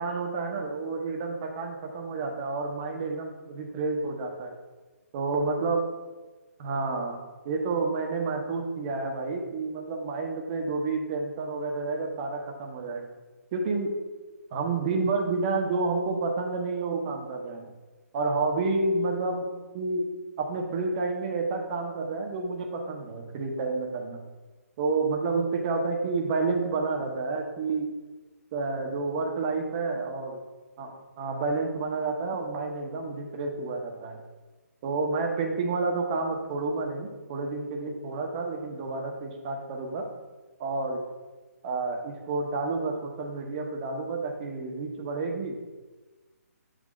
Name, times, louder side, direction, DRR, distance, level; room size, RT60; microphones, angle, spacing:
voice 1, 0.0-4.5 5.1-5.8 6.6-7.2 7.4-13.1 13.5-13.9 14.5-17.7 18.1-19.4 19.7-20.1 20.4-24.2 24.8-27.9 28.5-30.4 30.8-34.2 34.8-40.1 40.6-41.0 41.6-45.6, right 3 dB, 30° right, 2 dB, 0.9 m, -30 dB
7.5 x 2.7 x 5.1 m, 1.2 s
figure-of-eight pair, 140°, 9 cm